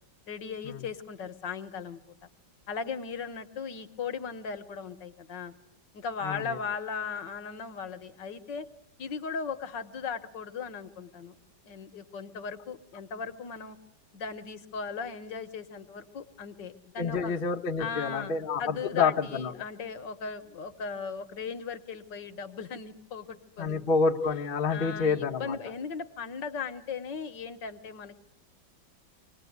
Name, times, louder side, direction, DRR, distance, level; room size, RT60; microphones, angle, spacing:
voice 1, 0.3-2.3 2.7-5.5 5.9-8.7 9.0-11.3 11.6-13.8 14.1-17.4 17.8-18.3 18.6-23.8 24.7-28.3, left 5 dB, 65° left, 10 dB, 1.8 m, -37 dB
voice 2, 6.2-6.6 17.0-19.5 23.6-25.6, left 4 dB, 30° left, 2 dB, 1.1 m, -28 dB
26.0 x 20.0 x 9.4 m, 0.76 s
omnidirectional pair, 2.1 m